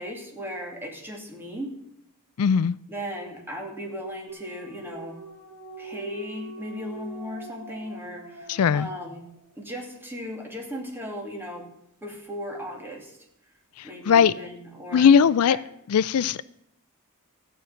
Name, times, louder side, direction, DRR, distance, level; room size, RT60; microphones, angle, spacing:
voice 1, 0.0-1.8 2.9-5.2 5.8-9.2 9.6-11.6 12.0-13.2 13.8-15.1 15.5-15.6, equal, 10° right, 0 dB, 2.6 m, -36 dB
voice 2, 2.4-2.8 8.5-8.9 13.8-14.3 14.9-15.6 15.9-16.4, left 7 dB, 75° left, 18 dB, 0.4 m, -19 dB
sound 1, 4.3-9.5, right 1 dB, 40° right, 3.7 m, -43 dB
14.0 x 6.6 x 8.8 m, 0.76 s
head